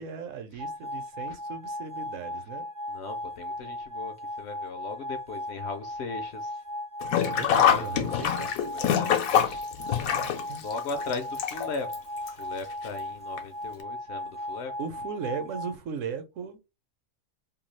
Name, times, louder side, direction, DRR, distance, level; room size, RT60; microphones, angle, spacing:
voice 1, 0.0-2.7 7.2-8.6 10.0-10.6 14.8-16.6, right 6 dB, 70° right, 1.0 m, -37 dB
sound 1, 0.6-15.7, left 1 dB, 50° right, 0.5 m, -37 dB
voice 2, 1.0-1.4 2.9-6.6 7.1-9.7 10.6-14.8, left 4 dB, 65° left, 0.7 m, -39 dB
Sink (filling or washing), 7.0-12.0 12.3-12.4 13.4-13.5 13.8-13.9, left 9 dB, 85° left, 1.1 m, -25 dB
2.7 x 2.3 x 3.1 m
omnidirectional pair, 1.4 m